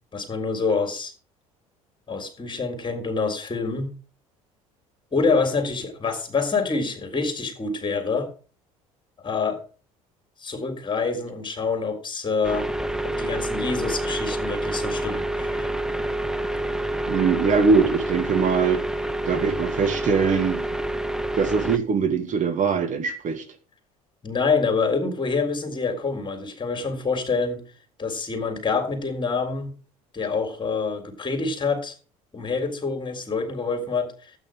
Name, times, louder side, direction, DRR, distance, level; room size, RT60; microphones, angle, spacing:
voice 1, 0.1-1.1 2.1-3.9 5.1-8.3 9.2-9.6 10.4-12.7 13.0-15.7 24.2-27.6 28.0-29.7 30.1-32.0 32.3-34.3, left 4 dB, 25° left, 7 dB, 3.8 m, -26 dB
sound 1, 12.4-21.8, right 1 dB, 5° right, 1.1 m, -28 dB
voice 2, 17.1-18.8 19.3-20.6 21.4-23.4, right 5 dB, 45° right, 6 dB, 2.5 m, -22 dB
13.0 x 8.9 x 5.1 m, 0.37 s
figure-of-eight pair, 60°, 18 cm